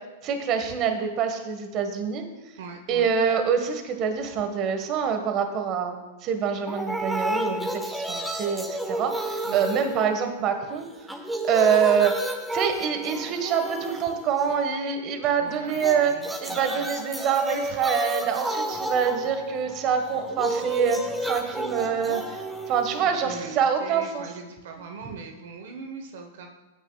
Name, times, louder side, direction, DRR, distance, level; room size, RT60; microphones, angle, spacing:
voice 1, 0.2-2.2 2.9-10.9 11.4-12.2 12.5-16.1 16.4-24.2, right 7 dB, 40° right, 6 dB, 1.6 m, -25 dB
voice 2, 2.6-3.1 9.5-9.7 15.2-16.9 23.1-26.5, right 5 dB, 70° right, 4 dB, 1.3 m, -41 dB
sound 1, 6.7-10.6 10.9-14.7 15.7-23.7, right 1 dB, 5° right, 1.2 m, -32 dB
18.0 x 9.6 x 2.4 m, 1.2 s
hypercardioid pair, 110°, 0 cm